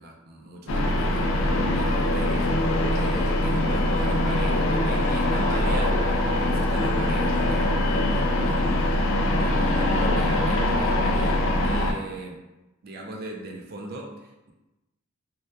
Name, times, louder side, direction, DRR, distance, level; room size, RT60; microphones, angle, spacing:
voice 1, 0.0-2.5 2.9-8.7 9.4-12.4 12.8-14.5, right 2 dB, 45° right, 0 dB, 0.3 m, -38 dB
sound 1, 0.7-11.9, left 1 dB, 70° left, 0.3 m, -23 dB
2.7 x 2.2 x 2.2 m, 1.0 s
head